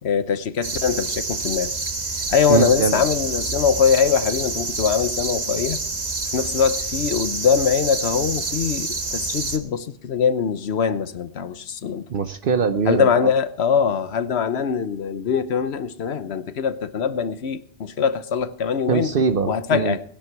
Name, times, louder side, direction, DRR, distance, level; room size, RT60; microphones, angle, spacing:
voice 1, 0.0-1.7 2.3-5.8 6.3-12.1 12.8-19.1 19.5-20.0, left 6 dB, 85° left, 1.2 m, -22 dB
sound 1, 0.6-9.6, right 3 dB, 40° right, 1.4 m, -28 dB
voice 2, 2.5-3.0 12.1-13.3 18.9-20.0, right 6 dB, 60° right, 0.9 m, -22 dB
20.0 x 10.0 x 4.6 m
omnidirectional pair, 1.1 m